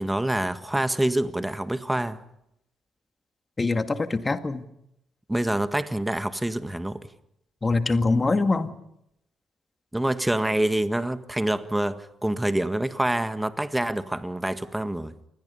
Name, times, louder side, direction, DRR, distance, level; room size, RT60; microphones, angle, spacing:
voice 1, 0.0-2.2 5.3-7.0 9.9-15.1, right 1 dB, 10° right, 1.7 m, -26 dB
voice 2, 3.6-4.7 7.6-8.7, left 3 dB, 30° left, 2.0 m, -23 dB
28.5 x 22.0 x 5.6 m
hypercardioid pair, 50°, 0 cm